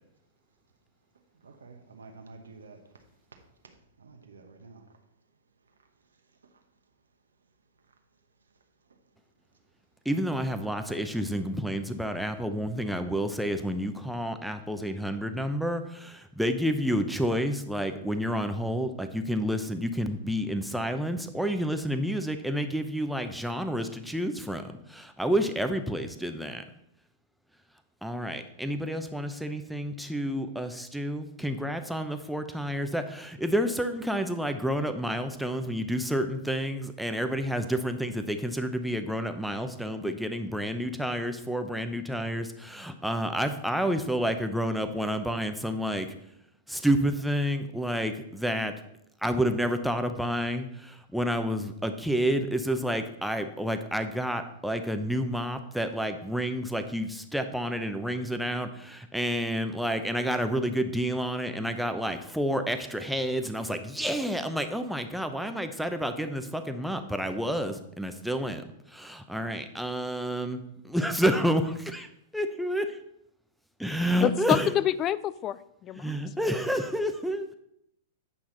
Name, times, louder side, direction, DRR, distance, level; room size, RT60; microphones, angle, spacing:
voice 1, 1.3-3.0 3.3-5.0 5.6-6.6 7.9-8.0 8.4-8.5 8.8-9.0 10.8-11.5, right 4 dB, 85° right, 4 dB, 1.0 m, -52 dB
voice 2, 10.0-26.6 28.0-46.1 46.7-48.7 49.2-72.1 72.3-73.0 73.8-74.7 75.9-77.5, equal, ahead, 7 dB, 0.7 m, -29 dB
voice 3, 74.2-76.2, left 11 dB, 30° left, 17 dB, 0.3 m, -27 dB
8.6 x 5.7 x 3.9 m, 0.77 s
hypercardioid pair, 110°, 0 cm